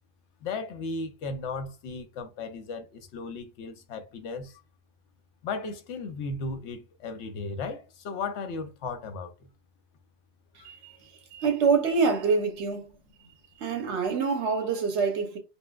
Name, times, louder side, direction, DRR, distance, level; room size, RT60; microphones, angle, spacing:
voice 1, 0.4-4.6 5.4-9.3 10.6-10.7, left 4 dB, 85° left, 0.9 m, -35 dB
voice 2, 10.6-11.0 11.3-13.0 13.6-15.4, right 5 dB, 80° right, 1.1 m, -26 dB
4.3 x 2.0 x 2.3 m
omnidirectional pair, 1.1 m